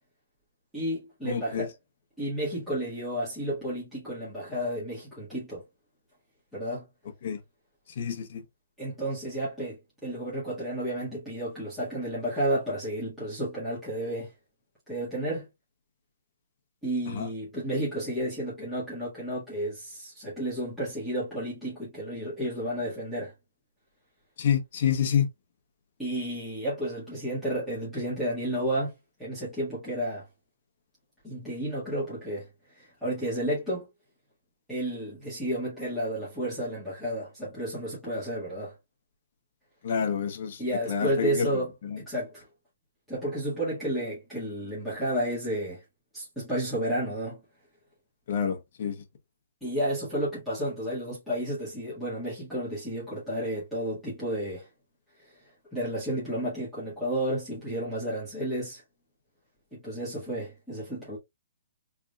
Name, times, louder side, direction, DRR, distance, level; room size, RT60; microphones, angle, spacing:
voice 1, 0.7-1.7 2.2-5.6 6.5-6.9 8.8-14.3 14.9-15.5 16.8-23.3 26.0-28.9 29.2-30.2 31.2-33.9 34.7-38.7 40.6-41.7 42.0-42.4 43.1-45.8 46.1-47.4 49.6-54.7 55.2-55.3 55.7-58.8 59.7-61.2, right 1 dB, ahead, 1.7 m, -32 dB
voice 2, 1.2-1.7 7.2-7.4 8.0-8.4 17.1-17.3 24.4-25.3 39.8-40.6 40.9-41.5 41.8-42.0 48.3-49.0, left 7 dB, 40° left, 1.0 m, -28 dB
3.7 x 3.4 x 2.4 m
hypercardioid pair, 175°, 0 cm